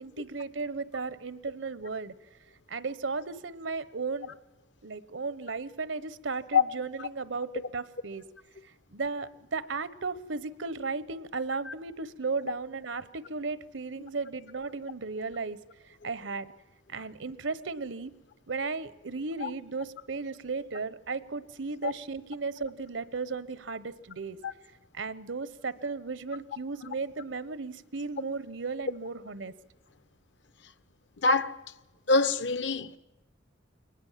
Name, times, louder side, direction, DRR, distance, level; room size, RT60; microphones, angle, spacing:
voice 1, 0.0-2.1 2.7-4.3 4.8-8.2 8.9-15.6 16.0-16.5 16.9-18.1 18.5-24.4 24.9-29.5, right 4 dB, 90° right, 1.0 m, -35 dB
voice 2, 31.2-31.6 32.1-33.0, left 4 dB, 70° left, 0.9 m, -24 dB
23.0 x 19.5 x 7.4 m
head